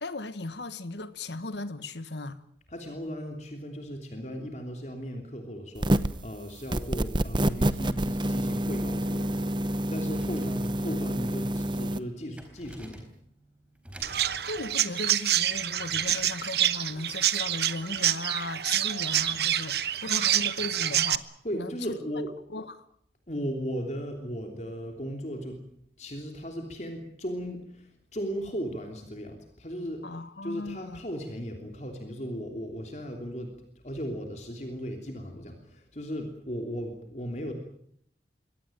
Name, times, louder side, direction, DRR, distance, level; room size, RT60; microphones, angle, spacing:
voice 1, 0.0-2.4 10.3-10.5 14.5-21.3 21.5-22.0 22.5-22.8 30.0-31.0, left 2 dB, 85° left, 1.4 m, -37 dB
voice 2, 2.7-13.1 21.4-22.3 23.3-25.6 26.0-30.0 30.4-33.5 33.8-37.5, equal, 40° left, 3.2 m, -36 dB
sound 1, 5.8-6.2 6.7-12.0, right 1 dB, 25° right, 0.9 m, -27 dB
sound 2, 10.1-16.4, equal, 5° right, 4.1 m, -51 dB
Chirp tweet, 14.0-21.2, right 12 dB, 70° right, 1.0 m, -27 dB
24.0 x 18.0 x 9.1 m
head